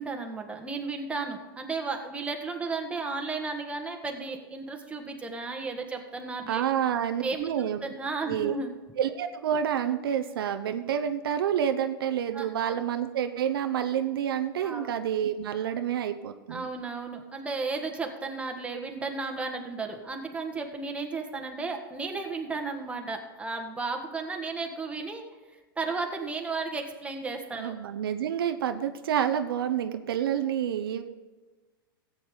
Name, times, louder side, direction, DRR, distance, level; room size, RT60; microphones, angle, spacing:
voice 1, 0.0-6.6 7.2-8.7 12.3-12.5 14.6-14.9 16.5-25.2 25.8-27.8, right 3 dB, 10° right, 2 dB, 1.7 m, -34 dB
voice 2, 6.5-7.8 8.3-8.6 9.0-16.7 27.6-31.0, right 9 dB, 75° right, 8 dB, 0.8 m, -28 dB
15.0 x 8.4 x 3.8 m, 1.3 s
hypercardioid pair, 110°, 12 cm